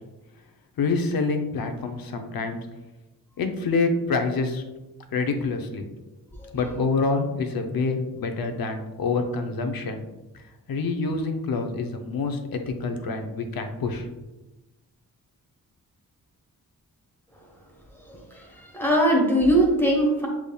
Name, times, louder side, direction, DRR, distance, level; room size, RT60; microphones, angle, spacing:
voice 1, 0.8-2.6 3.4-4.6 5.1-5.8 6.5-10.0 10.7-14.1, left 4 dB, 75° left, 5 dB, 0.7 m, -26 dB
voice 2, 18.1-20.3, right 1 dB, 5° left, -1 dB, 1.1 m, -21 dB
6.6 x 3.5 x 2.3 m, 1.0 s
wide cardioid pair, 105°, 36 cm